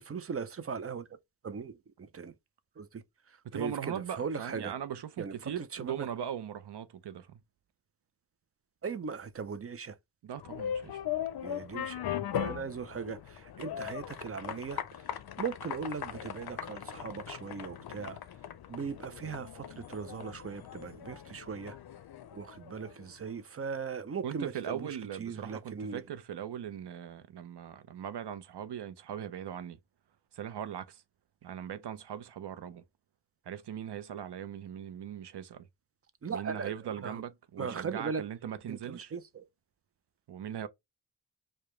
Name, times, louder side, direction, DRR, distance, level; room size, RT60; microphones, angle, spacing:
voice 1, 0.1-1.1 1.4-2.3 2.8-4.7 5.2-6.1 8.8-10.0 11.4-15.1 15.4-18.2 18.7-21.8 22.3-24.9 25.2-26.0 36.2-36.7 37.0-37.2 37.6-38.2 38.7-39.5, right 5 dB, 35° right, 0.5 m, -39 dB
voice 2, 3.4-7.4 10.2-11.0 24.2-29.8 30.3-31.0 31.4-32.8 33.4-35.7 36.3-39.1 40.3-40.7, right 9 dB, 85° right, 0.6 m, -40 dB
sound 1, 10.4-23.1, left 10 dB, 70° left, 0.5 m, -39 dB
4.9 x 2.2 x 3.0 m
wide cardioid pair, 120°, 39 cm